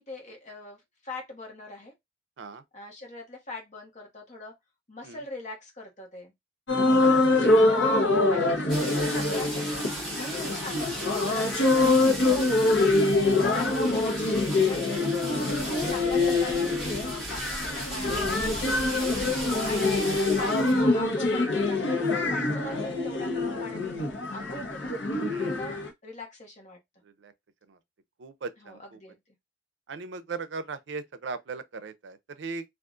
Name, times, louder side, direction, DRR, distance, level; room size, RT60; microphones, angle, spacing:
voice 1, 0.0-1.9 2.7-4.5 4.9-6.3 7.4-8.0 8.3-9.9 10.2-12.9 13.2-14.8 15.2-20.0 20.3-24.0 24.3-24.9 25.4-26.8 28.6-29.2, left 2 dB, 40° left, 1.2 m, -42 dB
sound 1, 6.7-25.9, left 2 dB, 80° left, 0.9 m, -25 dB
voice 2, 7.0-7.4 11.2-11.3 15.3-15.5 25.3-25.6 27.2-27.3 27.7-27.8 28.2-29.0 29.9-32.6, right 4 dB, 75° right, 0.5 m, -38 dB
sound 2, 8.7-20.9 21.2-21.3, right 1 dB, ahead, 1.7 m, -37 dB
3.6 x 2.4 x 2.4 m
head